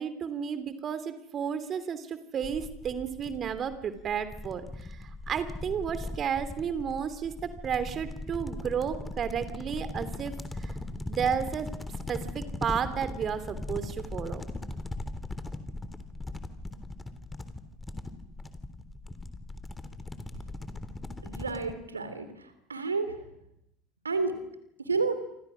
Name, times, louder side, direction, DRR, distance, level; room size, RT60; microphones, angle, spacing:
voice 1, 0.0-10.3 10.6-10.7 11.1-11.7 12.1-14.4, right 7 dB, 40° right, 12 dB, 3.0 m, -32 dB
sound 1, 2.4-21.7, left 2 dB, 15° left, 3.5 m, -39 dB
voice 2, 21.2-22.3 22.7-23.1 24.0-24.3 24.9-25.2, right 4 dB, 85° right, 10 dB, 3.2 m, -29 dB
29.0 x 26.0 x 6.4 m, 0.80 s
figure-of-eight pair, 70°, 0 cm